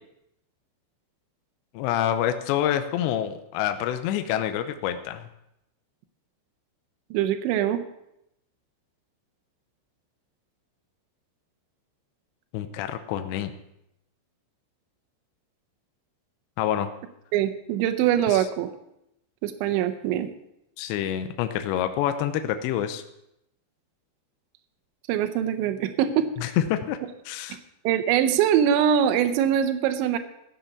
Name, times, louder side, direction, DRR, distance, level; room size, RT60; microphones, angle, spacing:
voice 1, 1.7-5.2 12.5-13.5 16.6-16.9 18.3-18.4 20.8-23.0 26.4-27.0 27.3-27.6, left 11 dB, 80° left, 8 dB, 2.7 m, -27 dB
voice 2, 7.1-7.8 17.3-18.7 19.4-20.3 25.1-26.5 27.8-30.2, right 9 dB, 80° right, 8 dB, 3.0 m, -23 dB
15.5 x 6.9 x 5.9 m, 0.82 s
omnidirectional pair, 5.6 m